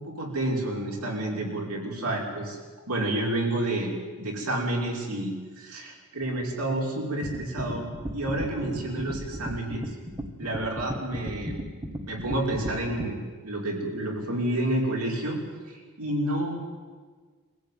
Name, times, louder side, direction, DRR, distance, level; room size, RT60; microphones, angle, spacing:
voice 1, 0.0-2.6 2.9-3.9 4.2-9.8 10.4-11.6 12.1-13.2 13.4-15.4 15.7-16.6, right 1 dB, 85° right, 0 dB, 5.5 m, -29 dB
sound 1, 7.2-13.1, equal, 20° right, 1.7 m, -35 dB
23.5 x 15.5 x 9.5 m, 1.5 s
head